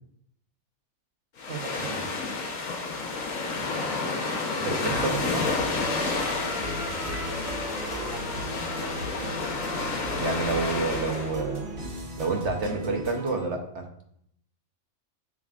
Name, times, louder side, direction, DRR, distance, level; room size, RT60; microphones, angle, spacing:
sound 1, 1.4-11.3, left 3 dB, 75° left, 1.4 m, -30 dB
voice 1, 1.5-2.0 3.5-3.6 4.6-5.4 10.2-11.7 12.2-13.9, right 4 dB, 60° right, 3 dB, 1.2 m, -29 dB
Trumpet, 3.6-11.2, equal, 5° right, 0.6 m, -41 dB
voice 2, 4.5-5.0 6.5-7.4 8.0-8.5, left 4 dB, 55° left, 3 dB, 0.7 m, -43 dB
sound 2, 4.8-13.5, right 1 dB, 85° right, 2.1 m, -37 dB
7.6 x 7.0 x 2.5 m, 0.71 s
omnidirectional pair, 1.4 m